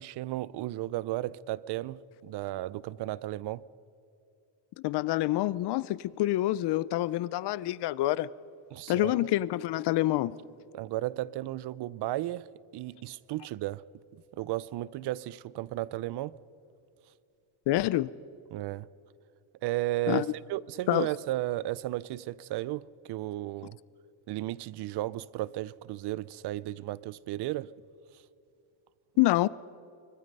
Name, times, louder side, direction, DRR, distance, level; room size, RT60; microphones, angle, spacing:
voice 1, 0.0-3.6 8.7-9.3 10.7-12.5 12.7-13.8 14.3-16.4 18.5-18.9 19.6-23.8 24.3-27.7, right 16 dB, 60° right, 0.6 m, -34 dB
voice 2, 4.8-8.3 8.9-10.4 17.7-18.1 20.1-20.3 20.9-21.1 29.2-29.5, left 16 dB, 60° left, 0.6 m, -27 dB
24.5 x 22.0 x 5.4 m
cardioid pair, 135°, 46 cm